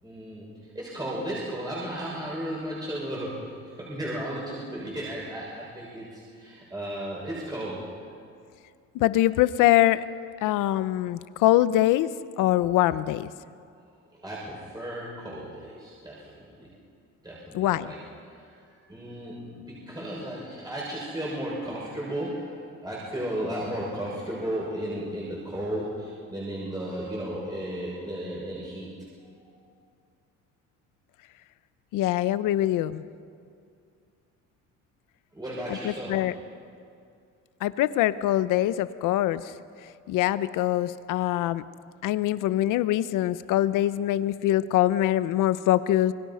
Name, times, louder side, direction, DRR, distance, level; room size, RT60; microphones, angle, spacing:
voice 1, 0.0-8.0 14.2-16.7 17.2-18.0 18.3-28.9 29.4-29.5 35.3-36.3, right 1 dB, 15° right, -5 dB, 6.5 m, -34 dB
voice 2, 8.9-10.0 10.4-12.1 12.4-13.3 17.5-17.9 31.9-33.0 35.8-36.3 37.6-39.5 40.1-41.6 42.0-46.1, left 14 dB, 85° left, 15 dB, 0.9 m, -23 dB
28.5 x 21.5 x 5.7 m, 2.4 s
cardioid pair, 105°, 31 cm